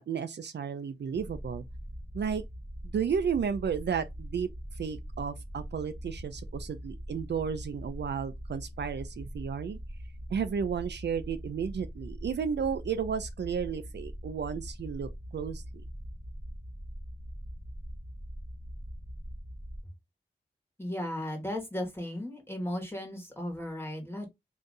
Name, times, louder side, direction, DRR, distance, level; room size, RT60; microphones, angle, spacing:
voice 1, 0.0-1.6 2.1-2.4 2.8-4.5 4.7-9.8 10.3-15.6, right 7 dB, 75° right, 0.4 m, -33 dB
sound 1, 1.1-19.8, equal, 15° right, 0.9 m, -42 dB
voice 2, 20.8-24.3, left 1 dB, 10° left, 1.3 m, -35 dB
2.7 x 2.4 x 3.8 m
wide cardioid pair, 70°, 18 cm